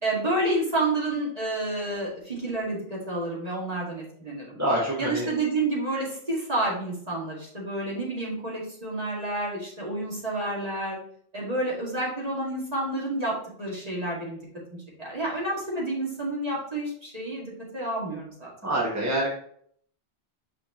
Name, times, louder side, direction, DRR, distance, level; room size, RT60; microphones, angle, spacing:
voice 1, 0.0-4.6 5.0-11.0 11.3-14.4 15.0-18.5, right 2 dB, 35° right, -6 dB, 2.4 m, -29 dB
voice 2, 4.5-5.3 18.6-19.3, right 1 dB, 15° right, -6 dB, 1.5 m, -26 dB
6.3 x 5.0 x 3.1 m, 0.62 s
omnidirectional pair, 1.1 m